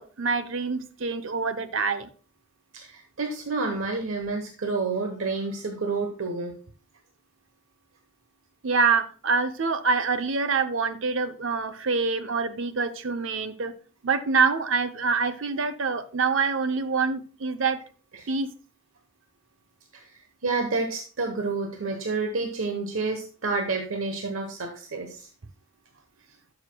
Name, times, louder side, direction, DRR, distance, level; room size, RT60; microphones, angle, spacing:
voice 1, 0.0-2.1 8.6-13.7 14.0-17.8 18.3-18.5, right 4 dB, 65° right, 11 dB, 0.7 m, -26 dB
voice 2, 2.7-6.6 18.1-18.3 20.4-25.3, right 3 dB, 80° right, 4 dB, 1.0 m, -29 dB
12.0 x 6.5 x 2.2 m, 0.40 s
head